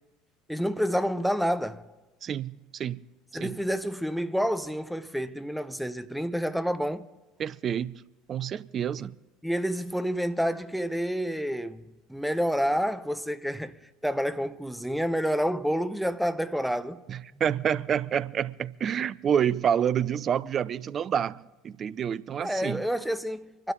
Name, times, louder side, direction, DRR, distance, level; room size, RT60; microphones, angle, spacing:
voice 1, 0.5-1.8 3.3-7.1 9.4-11.8 12.1-13.8 14.0-17.0 22.4-23.7, equal, ahead, 0.8 m, -28 dB
voice 2, 2.2-3.1 3.4-3.6 7.4-8.0 8.3-9.1 17.1-22.8, right 8 dB, 40° right, 0.4 m, -28 dB
25.0 x 12.0 x 3.7 m
figure-of-eight pair, 70°, 0 cm